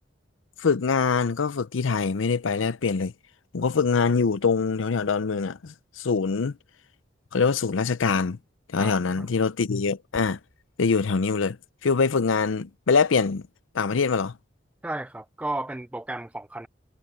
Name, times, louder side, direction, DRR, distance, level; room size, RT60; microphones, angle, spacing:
voice 1, 0.6-3.1 3.5-6.6 7.3-8.4 8.7-10.4 10.8-11.6 11.8-13.4 13.7-14.3, left 5 dB, 90° left, 0.6 m, -24 dB
voice 2, 8.8-9.3 14.8-16.7, right 1 dB, 5° right, 0.3 m, -34 dB
sound 1, 10.1-14.1 14.3-14.5, equal, 70° left, 5.6 m, -58 dB
head